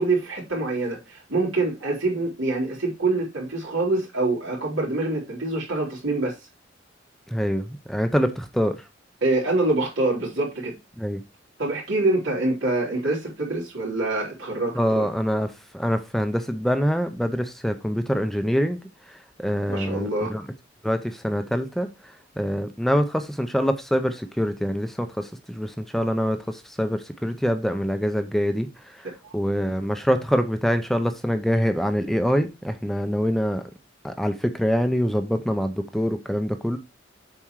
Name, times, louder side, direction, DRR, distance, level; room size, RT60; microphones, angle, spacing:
voice 1, 0.0-6.3 9.2-10.7 11.6-15.0 19.7-20.3 29.2-29.3, right 2 dB, 85° right, 3.6 m, -25 dB
voice 2, 7.3-8.8 11.0-11.2 14.8-15.5 15.7-18.8 19.1-20.4 20.8-28.7 28.9-29.1 29.3-33.6 34.0-36.8, equal, ahead, 0.6 m, -25 dB
7.4 x 4.4 x 4.7 m
head